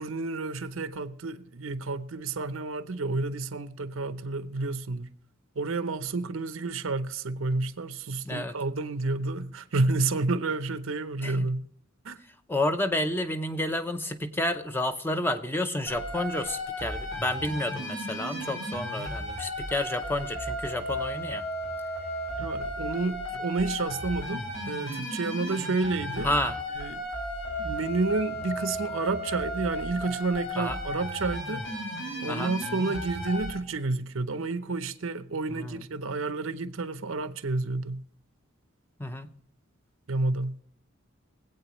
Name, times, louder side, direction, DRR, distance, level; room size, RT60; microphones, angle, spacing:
voice 1, 0.0-5.1 5.5-11.7 12.0-12.2 22.4-26.3 26.8-27.0 27.6-31.6 32.2-38.0 40.1-40.6, right 3 dB, 85° right, 0.7 m, -30 dB
voice 2, 11.2-11.5 12.5-21.4 26.2-26.6 30.6-30.8 32.3-32.5 35.5-35.8 39.0-39.3, left 1 dB, 10° left, 0.6 m, -30 dB
sound 1, 15.9-33.5, equal, 70° left, 6.6 m, -34 dB
23.5 x 8.4 x 3.1 m
head